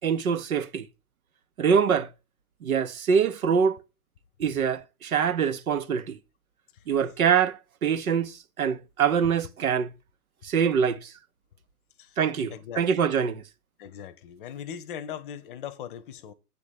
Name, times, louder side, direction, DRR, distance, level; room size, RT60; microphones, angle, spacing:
voice 1, 0.0-0.9 1.6-2.1 2.6-3.8 4.4-6.2 6.9-9.9 10.4-11.1 12.2-13.4, right 7 dB, 60° right, 1.0 m, -24 dB
voice 2, 12.5-13.1 13.8-16.3, left 9 dB, 35° left, 0.9 m, -39 dB
8.4 x 4.1 x 6.7 m
figure-of-eight pair, 115°, 47 cm